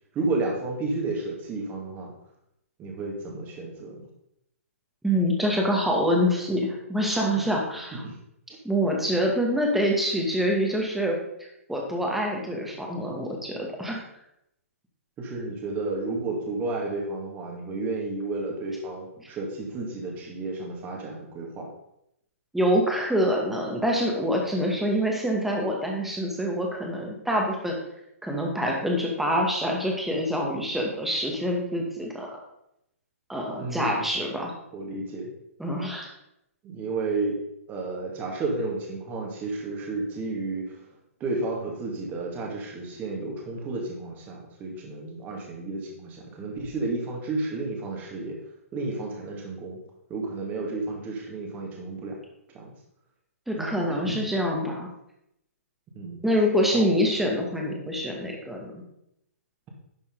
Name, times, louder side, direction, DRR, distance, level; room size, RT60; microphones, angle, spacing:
voice 1, 0.1-2.1 2.8-4.0 7.9-8.1 15.2-21.7 33.6-34.1 34.7-35.3 36.6-37.4 37.7-40.8 41.2-48.3 48.7-49.8 50.1-52.1 52.5-52.7 53.6-54.2 55.9-56.2 56.7-56.9, right 3 dB, 20° right, 0 dB, 2.5 m, -32 dB
voice 2, 5.0-8.0 8.6-11.2 11.7-14.0 19.2-19.3 22.5-27.8 28.2-32.4 33.3-34.5 35.6-36.1 53.5-54.9 56.2-58.8, equal, 5° right, -1 dB, 2.1 m, -26 dB
11.5 x 6.8 x 4.0 m, 0.81 s
figure-of-eight pair, 125°, 8 cm